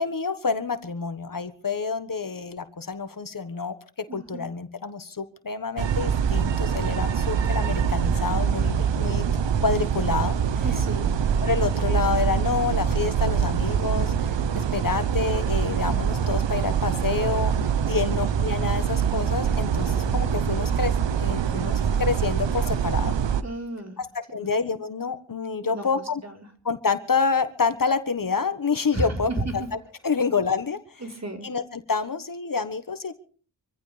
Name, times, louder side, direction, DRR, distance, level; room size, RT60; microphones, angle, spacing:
voice 1, 0.0-3.7 4.1-9.3 9.6-10.6 11.4-17.5 17.9-23.2 24.0-26.2 26.6-29.8 30.0-31.0 31.4-33.1, left 5 dB, 50° left, 10 dB, 1.5 m, -28 dB
voice 2, 4.1-4.4 10.6-11.1 17.9-18.1 23.4-24.0 25.6-25.8 26.2-26.4 28.9-29.1 29.4-29.5 31.0-31.5, right 1 dB, 40° right, 2 dB, 4.2 m, -33 dB
sound 1, 5.8-23.4, right 7 dB, 85° right, 0.9 m, -24 dB
26.0 x 15.0 x 3.4 m, 0.43 s
cardioid pair, 55°, 42 cm